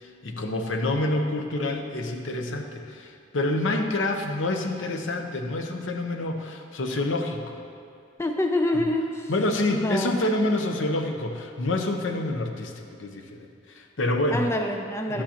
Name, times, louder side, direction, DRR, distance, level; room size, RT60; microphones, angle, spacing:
voice 1, 0.0-7.6 9.3-12.7 13.0-14.4 15.1-15.2, left 2 dB, 80° left, 4 dB, 0.8 m, -27 dB
voice 2, 8.2-9.3 9.7-10.2 14.3-15.2, left 1 dB, 15° left, 3 dB, 0.4 m, -26 dB
11.5 x 8.6 x 2.9 m, 2.3 s
head